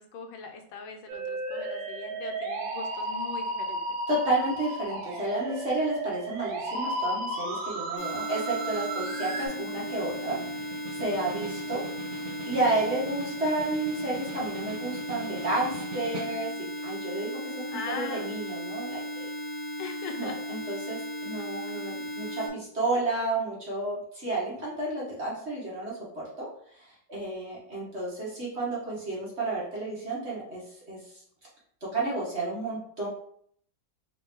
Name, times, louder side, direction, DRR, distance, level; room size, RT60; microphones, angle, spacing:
voice 1, 0.0-4.0 17.7-18.4 19.8-20.4, left 5 dB, 85° left, 5 dB, 1.4 m, -40 dB
Musical instrument, 1.1-9.5, right 1 dB, 85° right, 1.4 m, -34 dB
voice 2, 4.1-11.8 12.1-17.3 17.7-19.3 20.2-26.5 26.7-30.6 30.9-31.0 31.9-33.1, right 2 dB, 40° right, -5 dB, 1.2 m, -31 dB
sound 1, 8.0-22.5, equal, 65° left, 1.6 m, -36 dB
Snare drum, 8.8-16.7, right 3 dB, 65° right, 0.9 m, -44 dB
3.6 x 2.9 x 3.5 m, 0.64 s
omnidirectional pair, 2.0 m